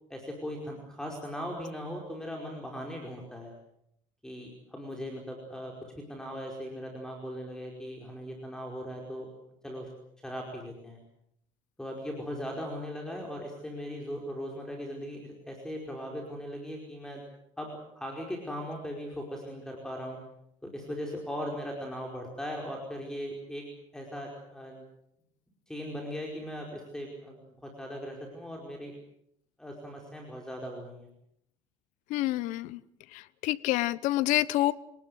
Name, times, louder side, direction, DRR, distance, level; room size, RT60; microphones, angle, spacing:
voice 1, 0.1-3.5 4.2-9.3 9.6-9.9 10.2-11.0 11.8-17.2 17.6-20.2 20.6-23.6 23.9-24.8 25.7-28.9 29.6-31.1, equal, 5° left, 0 dB, 5.1 m, -39 dB
voice 2, 32.1-32.8 33.1-34.7, left 16 dB, 75° left, 17 dB, 0.9 m, -28 dB
27.0 x 19.0 x 8.0 m, 0.75 s
cardioid pair, 125°, 13 cm